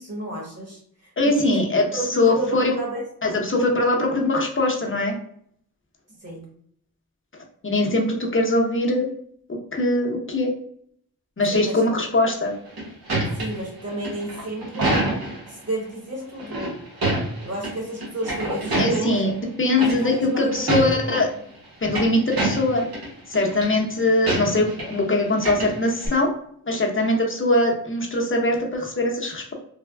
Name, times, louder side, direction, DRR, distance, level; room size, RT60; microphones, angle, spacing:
voice 1, 0.0-1.6 1.9-3.0 3.6-4.2 6.2-6.5 11.5-11.8 13.3-14.9 15.5-16.7 17.4-19.2 19.8-21.2, right 1 dB, 45° right, -2 dB, 1.2 m, -32 dB
voice 2, 1.2-1.8 2.2-2.7 3.2-5.1 7.6-9.1 9.7-10.5 11.4-12.5 18.8-21.3 21.8-22.9 23.3-26.3 26.7-29.5, left 2 dB, 35° left, 0 dB, 0.7 m, -21 dB
sound 1, 12.4-15.5 16.4-17.7 18.0-19.2 19.8-20.2 20.5-21.2 21.6-23.1 23.3-23.7 24.3-25.0 25.3-26.1, right 1 dB, 90° right, 1.0 m, -26 dB
3.3 x 2.1 x 2.2 m, 0.66 s
wide cardioid pair, 55°, 36 cm